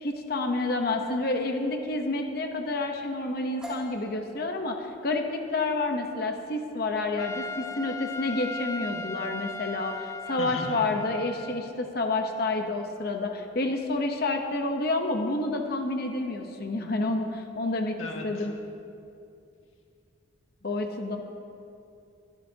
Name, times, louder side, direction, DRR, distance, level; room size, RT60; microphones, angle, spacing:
voice 1, 0.0-18.0 18.2-18.5 20.6-21.2, left 2 dB, 50° left, 4 dB, 0.9 m, -29 dB
sound 1, 3.6-11.2, right 1 dB, 5° right, 2.6 m, -49 dB
Trumpet, 7.2-11.8, left 3 dB, 15° left, 0.4 m, -37 dB
voice 2, 10.4-10.8 18.0-18.5, left 2 dB, 85° left, 0 dB, 1.8 m, -37 dB
23.0 x 12.0 x 2.9 m, 2.6 s
head